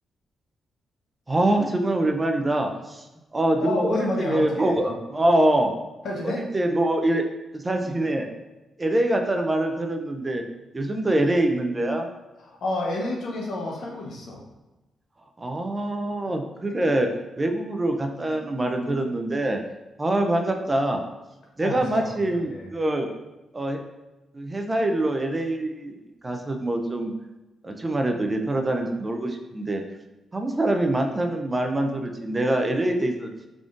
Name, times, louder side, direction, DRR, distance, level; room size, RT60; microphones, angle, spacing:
voice 1, 1.3-3.1 3.3-5.7 6.2-7.2 7.5-8.3 8.8-10.4 10.7-12.1 15.4-17.1 17.4-19.6 20.0-21.0 21.6-23.1 23.5-23.8 24.3-26.0 26.2-27.1 27.6-29.8 30.3-33.3, right 1 dB, 20° right, 4 dB, 0.4 m, -24 dB
voice 2, 3.6-4.7 6.0-6.4 12.4-14.4 21.6-22.7, left 2 dB, 70° left, -1 dB, 1.0 m, -30 dB
3.6 x 3.6 x 2.5 m, 1.1 s
cardioid pair, 120°, 0 cm